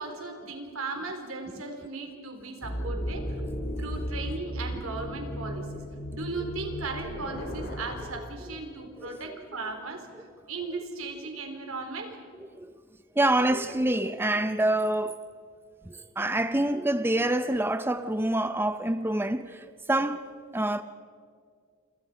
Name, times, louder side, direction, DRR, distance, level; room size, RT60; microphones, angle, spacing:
voice 1, 0.0-3.3 3.8-5.8 6.1-12.2, right 3 dB, 75° right, 3.9 m, -37 dB
sound 1, 2.6-8.2, equal, 50° left, 3.7 m, -35 dB
voice 2, 9.0-9.3 12.6-12.7 13.2-15.2 15.9-20.8, right 1 dB, 10° right, 0.6 m, -27 dB
28.0 x 26.5 x 5.1 m
head